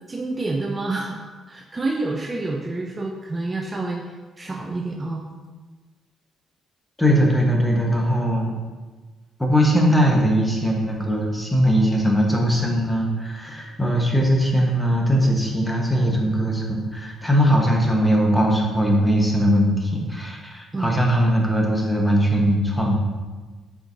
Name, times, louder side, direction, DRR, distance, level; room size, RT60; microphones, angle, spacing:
voice 1, 0.1-4.0 4.4-5.2 17.5-17.6 20.7-21.0, right 2 dB, 25° right, 0 dB, 0.5 m, -28 dB
voice 2, 7.0-8.5 9.4-23.0, equal, 10° left, -1 dB, 1.2 m, -20 dB
7.4 x 4.7 x 2.7 m, 1.3 s
cardioid pair, 90°, 0 cm